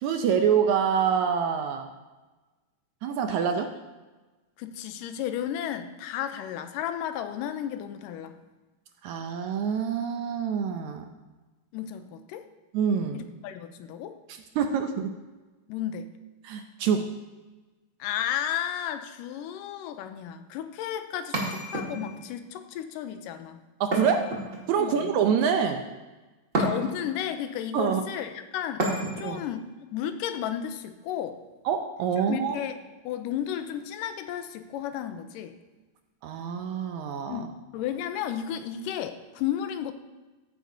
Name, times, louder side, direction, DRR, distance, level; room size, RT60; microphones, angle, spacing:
voice 1, 0.0-1.9 3.0-3.7 9.0-11.1 12.7-13.2 14.3-15.1 16.4-17.1 23.8-24.3 24.7-25.8 27.7-28.0 29.2-29.4 31.7-32.6 36.2-37.5, right 7 dB, 75° right, 6 dB, 1.9 m, -26 dB
voice 2, 4.6-8.4 11.7-12.5 13.1-14.2 15.7-16.1 18.0-23.6 24.8-25.2 26.6-31.4 32.2-32.8 33.0-35.6 37.3-39.9, left 10 dB, 85° left, 9 dB, 2.3 m, -33 dB
sound 1, 21.3-22.3 23.9-24.9 26.5-27.2 28.8-29.4, right 1 dB, 30° right, 1.7 m, -30 dB
15.0 x 9.4 x 2.7 m, 1.2 s
omnidirectional pair, 3.8 m